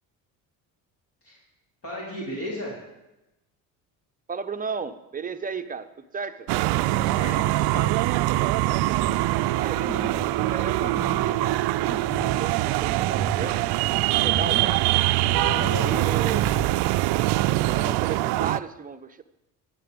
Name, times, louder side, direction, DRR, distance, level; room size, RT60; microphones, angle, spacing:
voice 1, 1.8-2.8 6.9-7.8 15.4-16.5, left 1 dB, 50° left, -5 dB, 3.7 m, -35 dB
voice 2, 4.3-6.5 9.5-13.7 14.2-14.8 15.6-16.5 17.5-19.2, right 5 dB, 20° right, 9 dB, 0.7 m, -34 dB
sound 1, 6.5-18.6, right 17 dB, 70° right, 0.5 m, -23 dB
sound 2, 9.1-14.8 15.1-16.7, right 1 dB, 5° left, 3.7 m, -37 dB
14.0 x 8.7 x 5.2 m, 0.96 s
cardioid pair, 100°, 41 cm